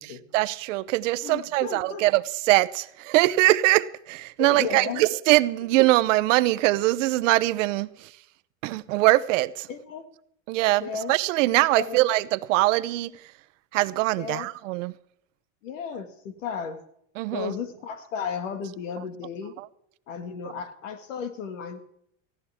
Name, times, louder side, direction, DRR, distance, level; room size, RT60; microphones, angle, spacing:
voice 1, 0.3-7.9 8.6-9.7 10.5-13.1 13.7-14.9 17.2-17.5, right 18 dB, 80° right, 0.8 m, -22 dB
voice 2, 1.2-2.0 4.4-5.1 9.7-10.0 10.8-11.1 11.8-12.0 14.2-14.5 15.6-16.8 17.3-19.5 20.1-21.8, left 6 dB, 90° left, 2.1 m, -34 dB
18.0 x 15.5 x 3.6 m
supercardioid pair, 115°, 37 cm